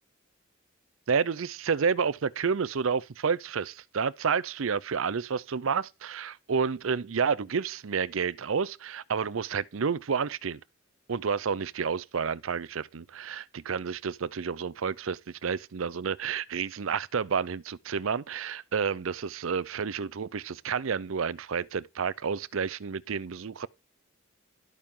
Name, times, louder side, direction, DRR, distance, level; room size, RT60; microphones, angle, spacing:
voice 1, 1.1-10.6 11.1-23.7, right 6 dB, 75° right, 0.5 m, -30 dB
12.5 x 8.7 x 3.7 m
head